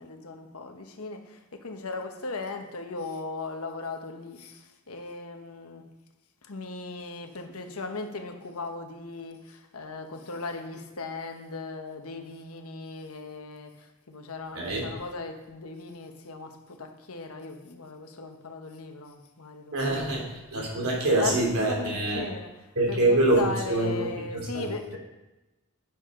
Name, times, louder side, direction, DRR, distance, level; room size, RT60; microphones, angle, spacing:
voice 1, 0.0-5.8 6.4-20.1 21.2-25.0, left 3 dB, 85° left, 5 dB, 1.2 m, -38 dB
voice 2, 14.5-14.9 19.7-22.2 22.8-23.4 23.7-24.1 24.3-24.7, right 2 dB, 85° right, -2 dB, 2.9 m, -25 dB
10.5 x 7.2 x 3.8 m, 1.0 s
head